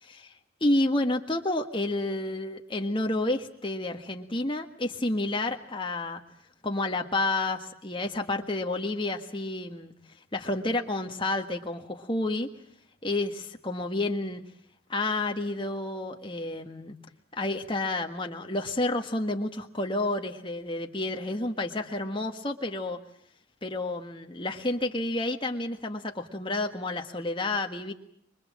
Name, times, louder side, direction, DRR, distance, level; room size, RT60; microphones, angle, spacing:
voice 1, 0.0-0.3 0.6-6.2 6.6-9.9 10.3-12.5 13.0-14.4 14.9-17.0 17.3-23.0 23.6-27.9, left 2 dB, 25° left, 4 dB, 1.6 m, -30 dB
25.0 x 23.0 x 7.5 m, 0.70 s
head